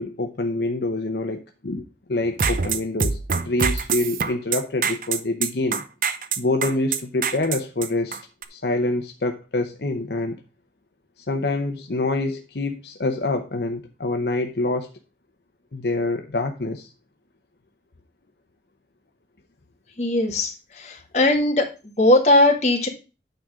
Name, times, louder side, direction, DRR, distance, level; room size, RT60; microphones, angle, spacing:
voice 1, 0.0-1.8 2.1-5.8 6.4-8.2 8.5-10.4 11.3-14.9 15.7-16.9, left 2 dB, 70° left, 5 dB, 0.8 m, -26 dB
sound 1, 2.3-8.4, right 6 dB, 50° right, 0.7 m, -25 dB
voice 2, 20.0-20.5 20.8-21.6 22.0-22.9, left 1 dB, 40° left, 2 dB, 1.7 m, -18 dB
9.2 x 3.8 x 6.0 m, 0.31 s
head